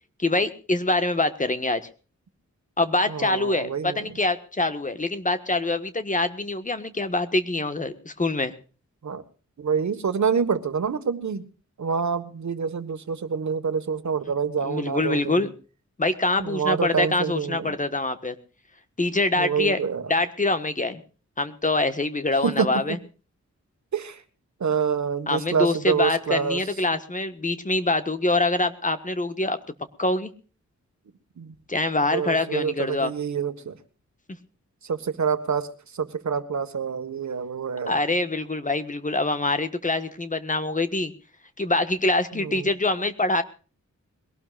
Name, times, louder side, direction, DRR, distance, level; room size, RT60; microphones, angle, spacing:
voice 1, 0.2-1.8 2.8-8.5 14.6-15.5 16.0-18.3 19.0-19.8 20.1-21.0 21.4-23.0 25.3-29.6 30.0-30.3 31.7-33.1 37.9-41.1 41.6-43.4, left 2 dB, 25° left, 10 dB, 1.4 m, -25 dB
voice 2, 3.1-4.1 9.0-9.2 9.6-11.4 11.8-15.5 16.4-17.8 19.3-20.0 22.4-22.8 23.9-24.2 24.6-26.6 31.4-31.5 32.1-33.8 34.8-35.7 35.9-38.0 42.3-42.7, right 6 dB, 75° right, 10 dB, 1.5 m, -27 dB
22.0 x 18.0 x 2.5 m, 0.37 s
wide cardioid pair, 130°, 29 cm